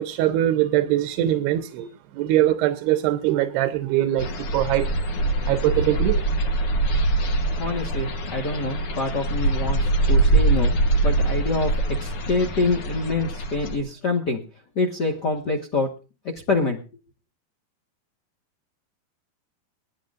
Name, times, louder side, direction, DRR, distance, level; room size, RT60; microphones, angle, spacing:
voice 1, 0.0-1.9 2.2-4.3 4.5-4.9 5.5-6.2, right 13 dB, 85° right, 2.9 m, -22 dB
sound 1, 4.2-13.8, right 2 dB, 80° left, 1.2 m, -23 dB
voice 2, 7.6-10.7 11.0-11.7 12.0-14.4 14.7-15.9 16.5-16.8, left 3 dB, 55° left, 1.1 m, -25 dB
20.5 x 15.5 x 2.6 m
omnidirectional pair, 4.6 m